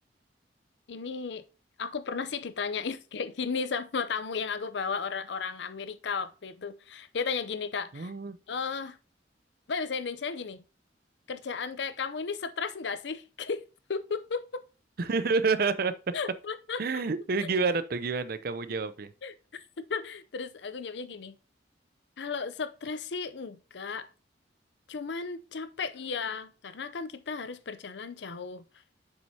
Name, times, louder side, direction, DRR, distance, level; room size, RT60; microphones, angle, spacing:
voice 1, 0.9-1.5 1.8-8.1 8.5-9.0 9.7-10.6 11.3-13.6 13.9-14.6 16.1-17.0 17.4-17.5 19.2-21.3 22.2-24.1 24.9-28.6, left 5 dB, 70° left, 0.6 m, -34 dB
voice 2, 7.9-8.4 15.0-15.9 16.8-19.1, right 4 dB, 55° right, 0.5 m, -28 dB
7.6 x 6.2 x 2.7 m
head